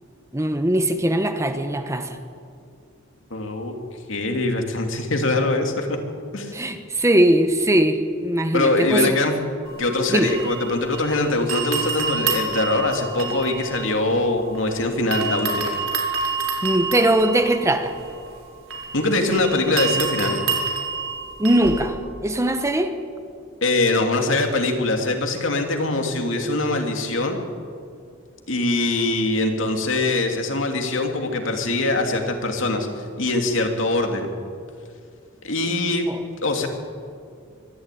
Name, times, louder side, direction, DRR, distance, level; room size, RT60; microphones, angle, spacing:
voice 1, 0.3-2.2 6.5-9.2 10.1-10.3 16.6-17.9 21.4-23.0 36.1-36.2, right 1 dB, 15° right, 8 dB, 1.2 m, -20 dB
voice 2, 3.3-3.8 4.1-6.0 6.3-6.6 8.5-9.4 9.8-15.7 18.9-20.4 23.6-27.4 28.5-34.3 35.4-36.1 36.4-36.7, left 2 dB, 70° left, 3 dB, 2.8 m, -23 dB
sound 1, 9.7-11.2 11.5-14.7 15.1-21.9, right 4 dB, 80° right, 4.6 m, -28 dB
24.0 x 13.5 x 9.3 m, 2.4 s
head